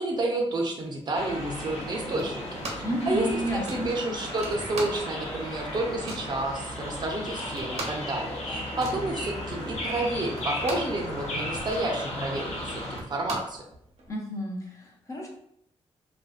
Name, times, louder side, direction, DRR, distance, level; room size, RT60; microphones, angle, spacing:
voice 1, 0.0-3.3 3.5-13.6, right 2 dB, 40° right, 1 dB, 0.5 m, -30 dB
sound 1, 1.1-13.0, left 1 dB, 80° left, 0.6 m, -35 dB
sound 2, 2.2-3.0 3.3-3.4 3.7-5.3 5.6-6.4 6.9-7.0 7.2-11.0 11.3-14.1, right 1 dB, 80° right, 0.7 m, -39 dB
voice 2, 2.8-3.9 14.1-15.3, equal, 30° left, -2 dB, 0.6 m, -31 dB
2.6 x 2.2 x 2.4 m, 0.73 s
cardioid pair, 105°, 11 cm